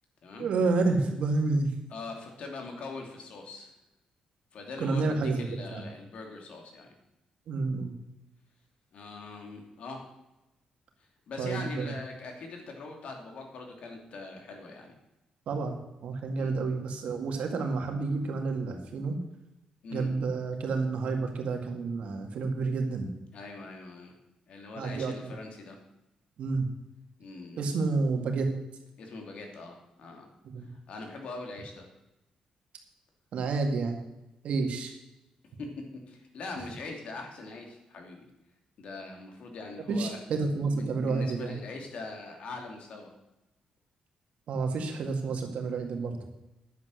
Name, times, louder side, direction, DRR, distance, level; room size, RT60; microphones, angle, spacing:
voice 1, 0.4-1.7 4.8-5.8 7.5-7.9 11.4-11.9 15.5-19.2 19.9-23.1 24.8-25.3 26.4-26.7 27.6-28.5 30.4-30.7 33.3-34.0 34.4-34.9 39.9-41.6 44.5-46.2, right 3 dB, 70° right, 3 dB, 2.2 m, -29 dB
voice 2, 1.9-3.7 4.5-6.9 8.9-10.1 11.3-14.9 16.3-16.5 19.8-20.1 23.3-24.1 24.5-25.8 27.2-27.6 29.0-30.3 30.6-31.9 35.6-35.7 36.1-38.2 38.8-40.2 40.7-43.1, left 3 dB, 65° left, 2 dB, 2.8 m, -42 dB
10.5 x 8.2 x 6.5 m, 0.93 s
cardioid pair, 110°, 2 cm